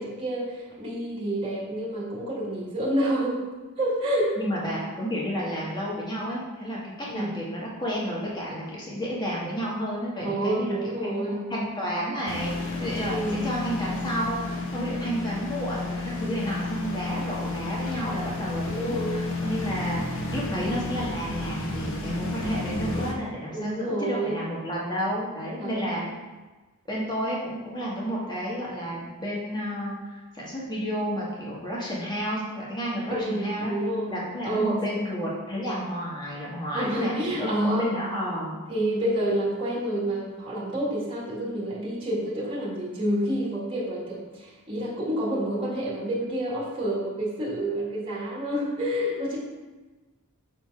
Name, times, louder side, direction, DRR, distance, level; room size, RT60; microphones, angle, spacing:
voice 1, 0.0-4.4 7.1-7.4 10.2-11.5 13.0-13.5 18.6-19.4 23.5-24.5 25.6-26.0 33.2-34.2 34.4-35.0 36.7-37.9 38.7-49.4, right 1 dB, 25° right, -6 dB, 1.8 m, -28 dB
voice 2, 4.4-11.2 11.5-26.1 26.9-33.7 34.1-38.6, equal, 20° left, -5 dB, 1.9 m, -31 dB
sound 1, 12.3-23.1, left 2 dB, 60° left, 1.1 m, -31 dB
6.8 x 4.3 x 4.7 m, 1.2 s
head